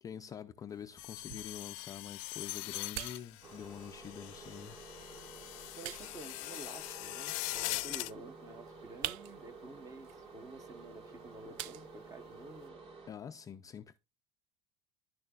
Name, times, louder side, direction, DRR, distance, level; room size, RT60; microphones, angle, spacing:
voice 1, 0.0-4.8 13.1-14.0, left 8 dB, 20° left, 0.4 m, -46 dB
sound 1, 0.7-12.7, right 13 dB, 70° right, 0.6 m, -50 dB
sound 2, 1.0-8.1, left 22 dB, 85° left, 0.5 m, -42 dB
sound 3, 3.4-13.1, right 3 dB, 40° right, 3.5 m, -52 dB
voice 2, 5.8-12.8, right 3 dB, 20° right, 0.9 m, -51 dB
11.0 x 6.4 x 2.3 m
cardioid pair, 155°, 17 cm